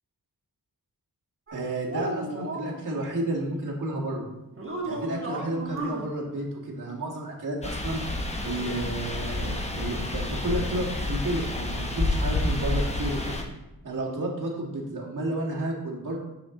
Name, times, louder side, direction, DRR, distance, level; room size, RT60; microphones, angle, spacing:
sound 1, 1.5-2.8 4.6-6.0, right 2 dB, 35° right, 1.3 m, -34 dB
voice 1, 1.5-4.3 4.8-8.0 8.4-13.4 13.8-16.2, right 1 dB, 55° right, -4 dB, 1.8 m, -31 dB
sound 2, 7.6-13.4, left 2 dB, 20° left, 0.9 m, -29 dB
6.6 x 5.8 x 3.7 m, 0.98 s
wide cardioid pair, 105°, 37 cm